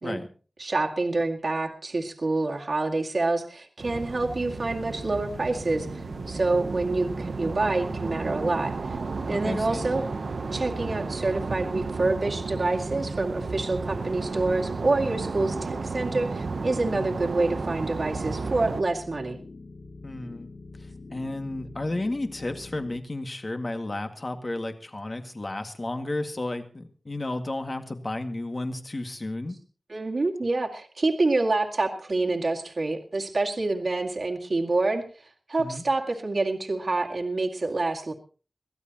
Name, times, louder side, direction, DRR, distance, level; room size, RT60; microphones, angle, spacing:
voice 1, 0.6-9.0 9.2-10.0 10.5-19.4 29.9-38.1, right 2 dB, 60° right, 1 dB, 2.2 m, -27 dB
sound 1, 3.8-18.8, right 4 dB, 80° right, 0.8 m, -33 dB
sound 2, 4.4-23.0, left 3 dB, 65° left, 1.4 m, -45 dB
voice 2, 9.3-9.8 16.8-17.1 20.0-20.5 20.8-29.6 35.6-35.8, left 2 dB, 40° left, 6 dB, 2.0 m, -33 dB
23.5 x 15.5 x 3.0 m, 0.38 s
wide cardioid pair, 60°, 0 cm